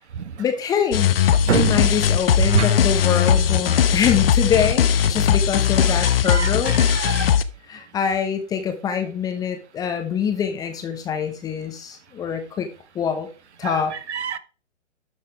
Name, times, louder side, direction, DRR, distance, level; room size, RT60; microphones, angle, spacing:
voice 1, 0.4-1.1 1.5-6.7 7.7-12.7 12.9-13.3 13.6-13.9, left 7 dB, 10° left, 0.8 m, -24 dB
sound 1, 0.9-7.4, left 8 dB, 50° left, 0.9 m, -19 dB
voice 2, 1.5-1.9 2.5-2.7 6.0-7.3 13.6-14.4, right 7 dB, 65° right, 1.2 m, -26 dB
12.0 x 5.8 x 4.6 m
figure-of-eight pair, 135°, 36 cm